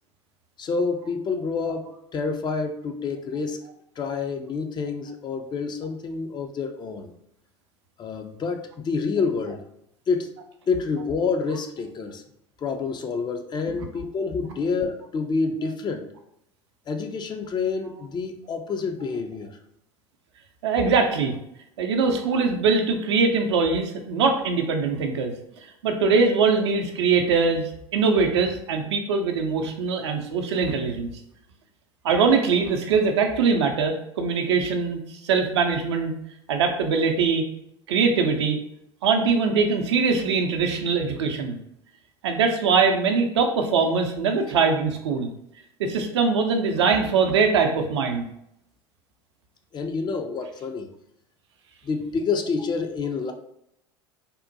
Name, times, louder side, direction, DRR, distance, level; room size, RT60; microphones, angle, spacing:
voice 1, 0.6-3.6 4.0-7.1 8.0-9.6 10.1-10.3 10.7-12.2 12.6-16.1 16.9-19.6 49.7-50.9 51.8-53.3, left 4 dB, 30° left, 6 dB, 0.4 m, -28 dB
voice 2, 20.6-21.3 21.8-25.3 25.8-31.1 32.0-36.1 36.5-37.4 37.9-38.6 39.0-41.6 42.2-45.3 45.8-48.3, right 5 dB, 75° right, 4 dB, 0.5 m, -22 dB
3.5 x 2.1 x 2.6 m, 0.75 s
hypercardioid pair, 75°, 15 cm